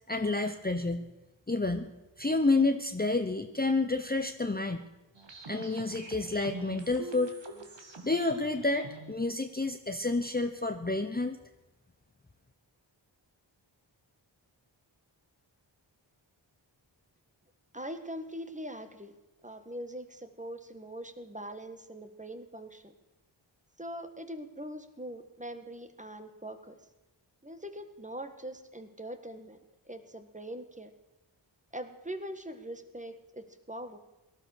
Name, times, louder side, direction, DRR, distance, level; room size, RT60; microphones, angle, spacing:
voice 1, 0.1-1.1 1.5-1.9 2.2-4.8 5.5-7.3 8.0-11.4, left 3 dB, 20° left, 6 dB, 0.9 m, -29 dB
sound 1, 5.2-9.1, right 3 dB, 65° right, 2.0 m, -45 dB
voice 2, 17.7-19.1 19.4-22.9 23.8-26.8 27.4-29.6 29.9-30.9 31.7-34.0, right 1 dB, 15° right, 8 dB, 1.6 m, -42 dB
18.0 x 11.5 x 6.6 m, 1.0 s
wide cardioid pair, 45°, 46 cm